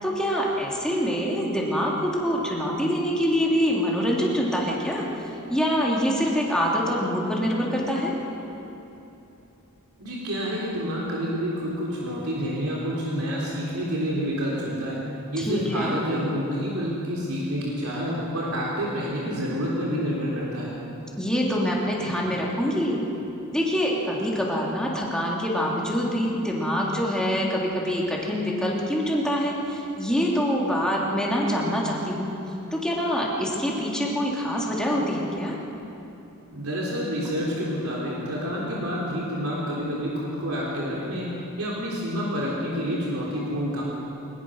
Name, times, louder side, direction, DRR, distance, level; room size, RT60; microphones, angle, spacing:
voice 1, 0.0-5.1 5.5-8.1 15.4-16.0 21.2-23.0 23.5-32.3 32.7-35.6, equal, 5° left, -3 dB, 3.1 m, -25 dB
voice 2, 10.0-15.0 15.3-20.7 36.5-41.3 41.6-43.8, equal, 75° right, -4 dB, 3.6 m, -28 dB
21.5 x 20.5 x 6.5 m, 2.9 s
head